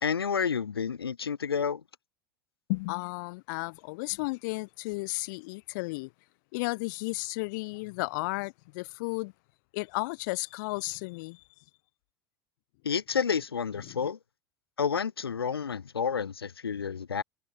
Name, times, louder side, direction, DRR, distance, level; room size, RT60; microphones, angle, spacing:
voice 1, 0.0-1.8 12.8-14.2 14.8-17.2, left 6 dB, 80° left, 1.0 m, -30 dB
voice 2, 2.7-6.1 6.5-9.3 9.7-11.4 13.8-14.1, left 26 dB, 55° left, 0.6 m, -33 dB
figure-of-eight pair, 75°, 13 cm